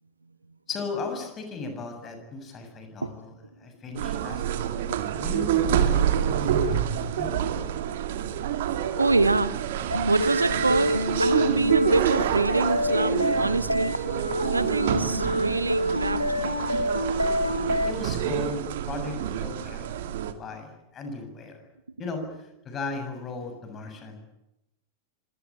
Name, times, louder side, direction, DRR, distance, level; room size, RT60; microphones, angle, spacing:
voice 1, 0.7-3.3 3.6-4.7 5.1-7.5 17.8-19.9 20.4-21.6 22.0-22.3 22.6-24.2, left 3 dB, 25° left, 6 dB, 7.3 m, -36 dB
sound 1, 3.9-20.3, right 9 dB, 55° right, 2.3 m, -27 dB
voice 2, 9.0-13.9 14.5-16.6 22.0-22.3, right 3 dB, 80° right, 16 dB, 1.2 m, -26 dB
sound 2, 9.9-17.9, left 1 dB, 90° left, 1.6 m, -27 dB
25.5 x 18.5 x 10.0 m, 0.89 s
figure-of-eight pair, 90°, 0 cm